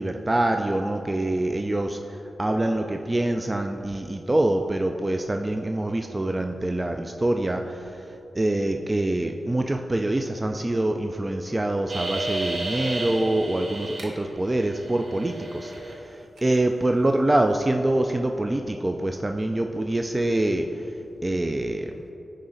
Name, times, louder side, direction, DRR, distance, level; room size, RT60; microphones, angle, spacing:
voice 1, 0.0-2.0 2.4-8.0 8.4-20.7 21.2-21.9, right 1 dB, 25° right, 4 dB, 0.3 m, -25 dB
sound 1, 11.9-14.0 14.4-15.9 16.4-16.5, right 2 dB, 75° right, 0.9 m, -32 dB
10.5 x 3.9 x 3.8 m, 2.9 s
cardioid pair, 60°, 0 cm